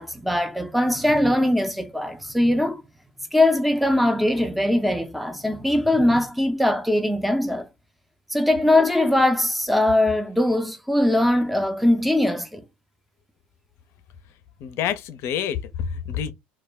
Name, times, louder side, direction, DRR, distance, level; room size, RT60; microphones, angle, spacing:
voice 1, 0.0-2.8 3.3-7.7 8.3-12.6, left 1 dB, ahead, 0.5 m, -21 dB
voice 2, 14.6-16.3, left 8 dB, 60° left, 0.5 m, -28 dB
2.2 x 2.1 x 3.3 m
hypercardioid pair, 80°, 5 cm